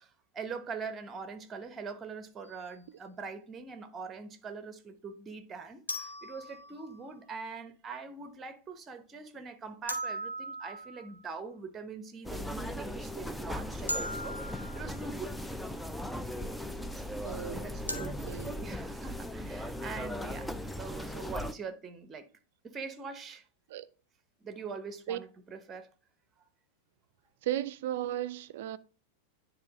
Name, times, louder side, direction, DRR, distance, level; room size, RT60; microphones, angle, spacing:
voice 1, 0.0-15.4 17.5-22.3 22.6-23.4 24.4-25.9, right 5 dB, 20° right, 0.9 m, -43 dB
sound 1, 2.4-2.6 5.9-7.2 9.9-11.3 13.9-15.1 17.9-18.1, equal, 85° left, 1.1 m, -38 dB
sound 2, 12.2-21.5, equal, ahead, 0.5 m, -38 dB
voice 2, 17.2-18.6 23.7-23.9 25.1-25.2 27.4-28.8, right 12 dB, 55° right, 0.4 m, -36 dB
9.6 x 3.7 x 3.5 m
figure-of-eight pair, 90°, 0 cm